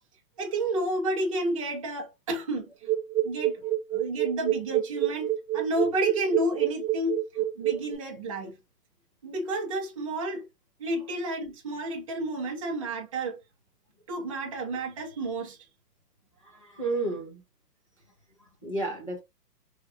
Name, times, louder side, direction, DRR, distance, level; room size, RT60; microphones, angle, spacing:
voice 1, 0.4-2.7 3.2-3.6 3.9-8.6 9.2-10.4 10.8-13.4 14.1-15.6, right 1 dB, 20° right, 0.6 m, -31 dB
sound 1, 2.8-8.0, right 13 dB, 90° right, 0.7 m, -27 dB
voice 2, 16.4-17.4 18.4-19.2, right 2 dB, 20° left, 0.4 m, -32 dB
3.2 x 2.3 x 2.6 m
hypercardioid pair, 165°, 49 cm